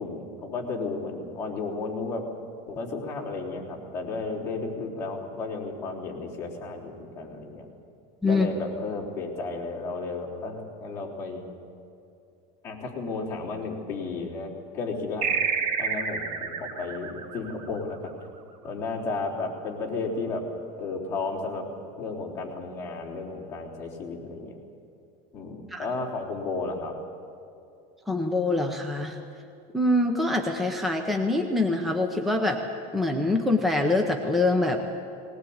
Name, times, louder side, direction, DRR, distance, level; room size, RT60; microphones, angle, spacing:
voice 1, 0.0-2.2 2.7-7.7 8.2-11.5 12.6-15.4 15.8-18.1 18.6-20.4 20.8-21.7 22.0-24.6 25.3-27.0, left 3 dB, 15° left, -7 dB, 3.6 m, -33 dB
sound 1, 15.2-18.2, right 6 dB, 90° right, 2.4 m, -29 dB
voice 2, 28.1-29.2 29.7-32.6 32.9-34.8, left 2 dB, ahead, 3 dB, 0.7 m, -24 dB
19.5 x 19.0 x 8.7 m, 2.5 s
cardioid pair, 180°, 21 cm